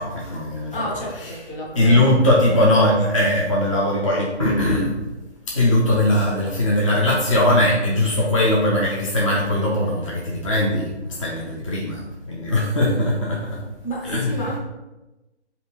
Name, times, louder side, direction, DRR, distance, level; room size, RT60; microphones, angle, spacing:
voice 1, 0.0-0.7 1.8-4.9 5.5-13.6 14.1-14.4, left 1 dB, 30° left, -4 dB, 0.5 m, -20 dB
voice 2, 0.7-2.4 13.8-14.6, equal, 50° left, -4 dB, 1.4 m, -31 dB
5.1 x 2.6 x 3.0 m, 1.0 s
hypercardioid pair, 160°, 34 cm